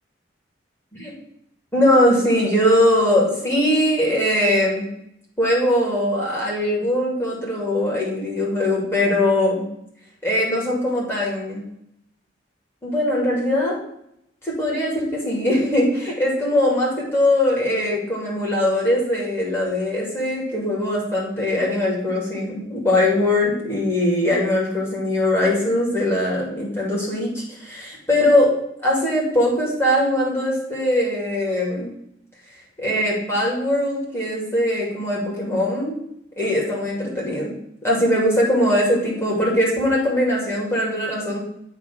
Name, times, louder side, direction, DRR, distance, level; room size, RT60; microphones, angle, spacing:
voice 1, 1.7-4.9 5.4-9.6 10.2-11.6 12.8-13.8 14.4-28.5 28.8-31.9 32.8-35.9 36.4-37.5 37.8-41.4, left 1 dB, 10° left, -5 dB, 2.3 m, -21 dB
8.2 x 3.0 x 6.0 m, 0.76 s
head